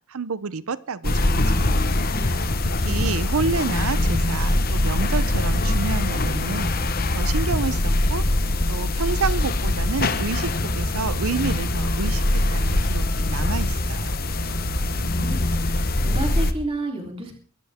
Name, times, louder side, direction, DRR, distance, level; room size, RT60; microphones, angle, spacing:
voice 1, 0.1-1.8 2.3-2.4 2.8-14.2, right 4 dB, 80° right, 0.7 m, -29 dB
sound 1, 1.0-16.5, left 1 dB, 45° left, 1.1 m, -23 dB
voice 2, 14.9-17.3, right 2 dB, 25° right, 3.5 m, -31 dB
22.5 x 13.5 x 3.6 m
head